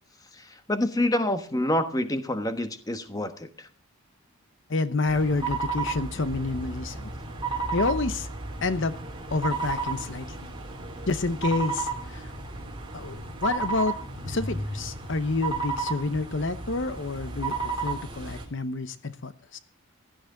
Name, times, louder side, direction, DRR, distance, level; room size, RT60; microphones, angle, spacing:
voice 1, 0.7-3.7, left 1 dB, 15° left, 9 dB, 1.2 m, -27 dB
voice 2, 4.7-7.1 7.7-8.3 8.6-8.9 9.3-10.3 11.1-12.3 12.9-14.0 14.3-19.6, left 3 dB, 55° left, 13 dB, 0.7 m, -28 dB
sound 1, 5.1-18.4, right 4 dB, 20° right, 3.2 m, -33 dB
16.5 x 13.0 x 3.8 m, 0.42 s
head